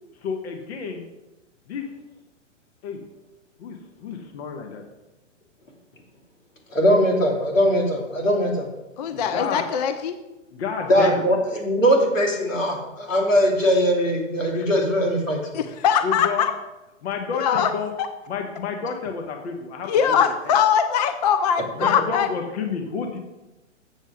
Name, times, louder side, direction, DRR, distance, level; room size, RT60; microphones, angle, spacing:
voice 1, 0.1-1.0 1.7-1.8 2.8-3.0 3.6-4.8 9.1-9.6 10.5-11.2 16.0-16.5 17.0-17.9 18.3-20.6 21.8-23.2, left 5 dB, 55° left, 3 dB, 1.4 m, -30 dB
voice 2, 6.7-8.7 10.9-15.4, equal, 85° left, 0 dB, 3.0 m, -20 dB
voice 3, 9.0-10.1 15.5-16.5 17.3-17.7 18.0-18.1 19.9-22.3, left 8 dB, 35° left, 9 dB, 0.5 m, -21 dB
7.6 x 7.2 x 5.1 m, 1.0 s
hypercardioid pair, 135°, 38 cm